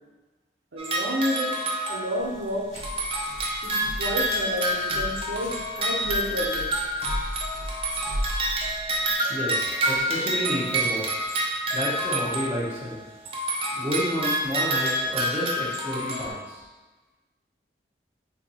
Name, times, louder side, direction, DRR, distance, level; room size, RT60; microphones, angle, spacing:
voice 1, 0.7-1.6 1.9-2.7 3.6-6.8, equal, 80° right, -2 dB, 0.7 m, -30 dB
sound 1, 0.8-2.5 2.8-13.0 13.2-16.3, right 1 dB, 30° right, 0.5 m, -28 dB
sound 2, 2.2-9.1, equal, 80° left, 0.9 m, -36 dB
voice 2, 9.3-11.3 11.7-13.0 13.8-16.6, equal, 10° right, -8 dB, 1.0 m, -30 dB
3.5 x 2.6 x 4.1 m, 1.2 s
head